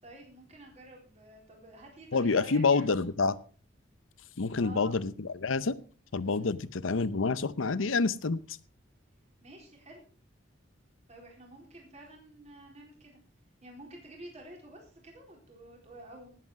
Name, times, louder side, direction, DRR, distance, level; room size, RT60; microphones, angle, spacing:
voice 1, 0.0-3.2 4.5-5.0 6.2-6.5 9.4-10.1 11.1-13.2 13.6-16.4, right 1 dB, 35° right, 0 dB, 4.1 m, -50 dB
voice 2, 2.1-3.4 4.4-5.8 6.1-8.6, left 4 dB, 90° left, 17 dB, 0.7 m, -28 dB
18.5 x 7.8 x 4.8 m, 0.39 s
head